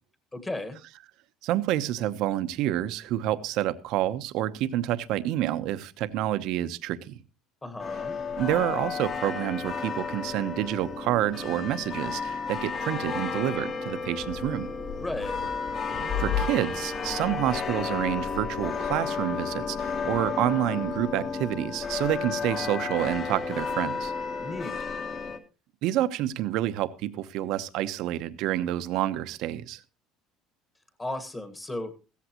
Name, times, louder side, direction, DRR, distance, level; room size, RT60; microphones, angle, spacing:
voice 1, 0.3-0.8 7.6-8.2 15.0-15.4 24.4-24.8 31.0-31.9, left 2 dB, 15° left, 1.5 m, -35 dB
voice 2, 1.4-7.2 8.4-14.7 16.2-24.1 25.8-29.8, right 13 dB, 65° right, 0.9 m, -28 dB
sound 1, 7.8-25.4, left 5 dB, 35° left, 1.6 m, -32 dB
sound 2, 14.2-20.3, left 7 dB, 55° left, 3.7 m, -37 dB
15.5 x 14.5 x 3.0 m
cardioid pair, 145°, 0 cm